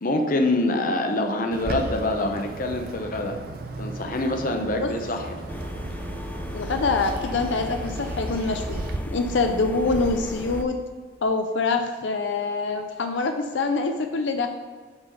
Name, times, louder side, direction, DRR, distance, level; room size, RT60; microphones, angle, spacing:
voice 1, 0.0-3.4 3.8-5.4, left 2 dB, 50° left, 4 dB, 0.8 m, -25 dB
Bird, 1.5-9.0, right 2 dB, 55° right, 0.7 m, -35 dB
sound 1, 5.5-10.6, left 1 dB, 10° left, 0.4 m, -35 dB
voice 2, 6.5-10.8 11.2-14.5, left 3 dB, 85° left, 6 dB, 0.5 m, -25 dB
7.8 x 4.0 x 5.5 m, 1.5 s
head